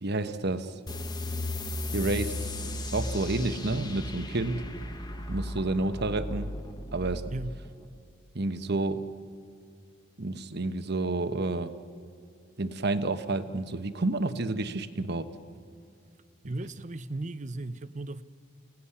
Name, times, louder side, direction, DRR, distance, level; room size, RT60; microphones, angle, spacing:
voice 1, 0.0-0.7 1.9-2.4 2.8-4.7 5.3-6.5 6.9-7.2 8.3-9.1 10.2-11.8 12.6-15.3, right 2 dB, 50° right, 1.2 m, -30 dB
sound 1, 0.9-8.0, left 1 dB, 20° left, 1.3 m, -35 dB
voice 2, 16.5-18.2, right 2 dB, 35° right, 0.7 m, -36 dB
29.0 x 18.0 x 10.0 m
head